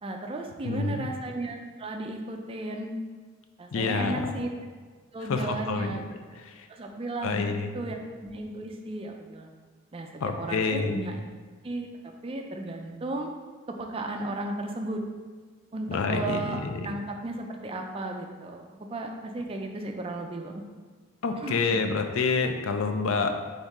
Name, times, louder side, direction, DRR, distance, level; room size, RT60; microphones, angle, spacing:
voice 1, 0.0-3.0 3.6-4.5 5.1-6.0 6.7-8.0 8.2-9.5 9.9-10.1 10.4-11.2 11.6-11.9 12.2-13.3 13.8-15.0 15.7-20.6 21.4-21.8, right 2 dB, 25° right, 3 dB, 0.4 m, -34 dB
voice 2, 0.6-1.1 3.7-4.3 5.3-6.0 6.4-6.7 7.2-7.8 10.2-11.2 15.9-16.9 21.2-23.4, left 4 dB, 70° left, 6 dB, 0.4 m, -28 dB
3.6 x 3.6 x 4.1 m, 1.5 s
head